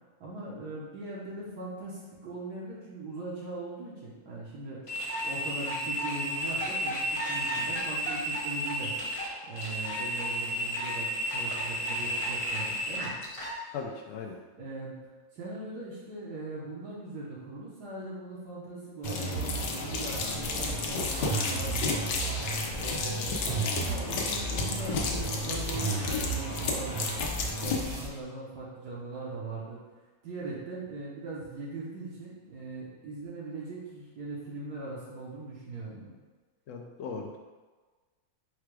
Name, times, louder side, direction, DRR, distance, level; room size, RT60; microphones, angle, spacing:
voice 1, 0.2-4.9 5.2-8.9 9.4-13.1 14.5-15.0 15.3-22.0 22.7-27.1 27.6-29.8 30.2-36.1, right 2 dB, 75° right, -7 dB, 1.5 m, -40 dB
sound 1, 4.9-13.6, equal, 45° left, 0.4 m, -32 dB
voice 2, 13.7-14.4 36.7-37.4, left 5 dB, 70° left, 2 dB, 0.7 m, -38 dB
sound 2, 19.0-27.8, left 4 dB, 90° left, 1.3 m, -33 dB
sound 3, 19.0-28.1, right 3 dB, 45° right, 1.0 m, -34 dB
4.7 x 2.3 x 4.6 m, 1.3 s
omnidirectional pair, 1.7 m